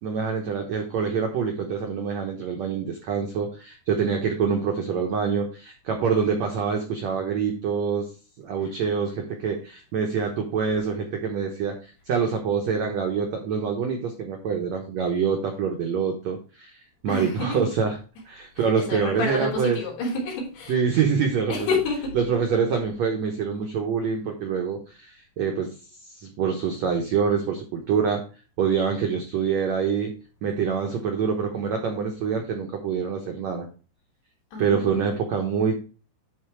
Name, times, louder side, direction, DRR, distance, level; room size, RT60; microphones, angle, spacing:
voice 1, 0.0-8.1 8.4-16.8 17.0-18.0 18.3-19.8 20.7-21.7 22.1-25.8 26.0-28.2 28.6-30.1 30.4-33.7 34.6-35.7, right 6 dB, 75° right, 1.6 m, -25 dB
voice 2, 17.1-17.8 18.6-20.8 21.5-22.2 34.5-35.2, left 2 dB, 70° left, 5.3 m, -29 dB
11.0 x 4.1 x 4.6 m
omnidirectional pair, 4.8 m